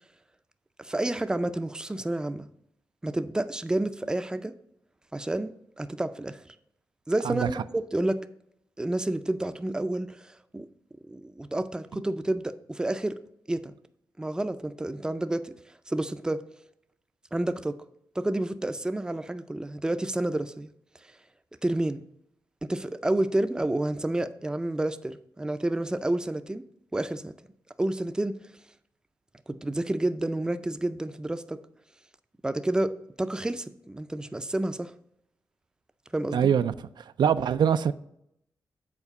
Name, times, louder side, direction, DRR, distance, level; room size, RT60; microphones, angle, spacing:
voice 1, 0.8-2.5 3.0-4.5 5.1-6.4 7.1-8.2 8.8-10.7 11.1-13.2 13.5-13.7 14.2-15.5 15.9-16.4 17.3-17.8 18.2-20.7 21.6-22.0 22.6-26.6 26.9-27.3 27.8-28.4 29.5-31.6 32.4-34.9 36.1-36.5, right 1 dB, 10° right, 0.4 m, -29 dB
voice 2, 36.3-36.7 37.2-37.9, right 8 dB, 75° right, 0.3 m, -23 dB
7.2 x 4.4 x 6.7 m
wide cardioid pair, 120°, 8 cm